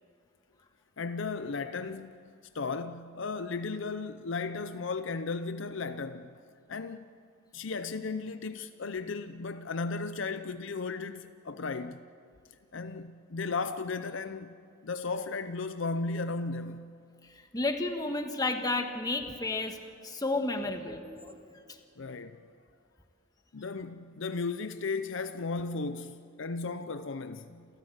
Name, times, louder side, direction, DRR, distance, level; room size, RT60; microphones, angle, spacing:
voice 1, 1.0-2.2 2.5-6.3 6.7-7.1 7.5-12.0 12.7-14.5 14.8-16.9 22.0-22.4 23.5-27.7, left 4 dB, 60° left, 0.6 m, -35 dB
voice 2, 17.5-19.8 20.0-21.5, left 2 dB, 20° left, 1.4 m, -32 dB
28.5 x 14.5 x 8.1 m
head